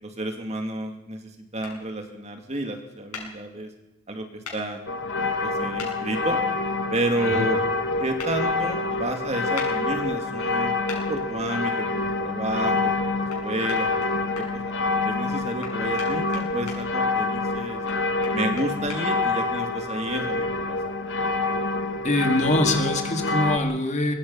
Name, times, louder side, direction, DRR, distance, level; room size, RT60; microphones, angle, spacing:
voice 1, 0.0-3.7 4.1-4.3 4.5-4.8 5.4-6.4 6.9-7.6 8.0-10.7 11.1-14.1 14.4-14.7 15.0-17.8 18.3-20.8, right 1 dB, 30° right, 4 dB, 2.5 m, -31 dB
sound 1, 1.6-1.7 3.1-3.3 4.4-4.6 5.8-5.9 8.2-8.3 9.5-9.7 10.9-11.0 13.3-13.4 13.7-14.5 15.6-16.8 17.9-19.0, left 5 dB, 90° left, 7.4 m, -37 dB
sound 2, 4.9-23.6, left 3 dB, 55° left, 1.4 m, -26 dB
voice 2, 22.0-24.1, left 1 dB, 30° left, 4 dB, 2.3 m, -23 dB
23.0 x 21.5 x 5.7 m, 0.96 s
head